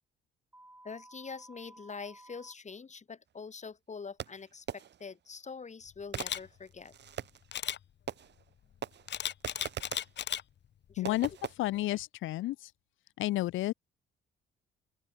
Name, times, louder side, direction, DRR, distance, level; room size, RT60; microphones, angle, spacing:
sound 1, 0.5-2.5, right 1 dB, 10° right, 5.7 m, -55 dB
voice 1, 0.8-6.9 10.9-11.2, left 5 dB, 35° left, 6.9 m, -45 dB
Fireworks, 4.2-5.1 6.1-7.5 8.1-8.5 8.8-10.2 11.0-11.5, right 9 dB, 60° right, 3.9 m, -41 dB
Camera, 6.1-6.4 7.5-7.8 9.1-10.4 10.9-11.2, left 10 dB, 60° left, 2.3 m, -35 dB
voice 2, 11.0-12.7 13.2-13.7, left 16 dB, 80° left, 0.7 m, -31 dB
open air
cardioid pair, 90°, 20 cm